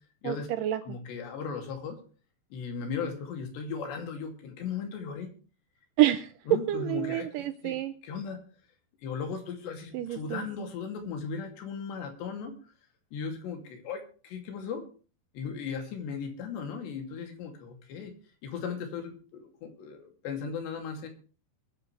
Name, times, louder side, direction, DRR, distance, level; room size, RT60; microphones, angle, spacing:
voice 1, 0.2-0.8 6.0-6.3 6.7-7.9 9.9-10.5, right 14 dB, 85° right, 11 dB, 1.9 m, -28 dB
voice 2, 0.9-2.0 2.5-5.3 6.5-7.3 7.6-7.8 8.0-8.4 9.0-12.5 13.1-14.8 15.3-18.1 18.4-21.1, left 6 dB, 85° left, 5 dB, 4.8 m, -37 dB
21.5 x 10.5 x 3.3 m, 0.38 s
omnidirectional pair, 4.8 m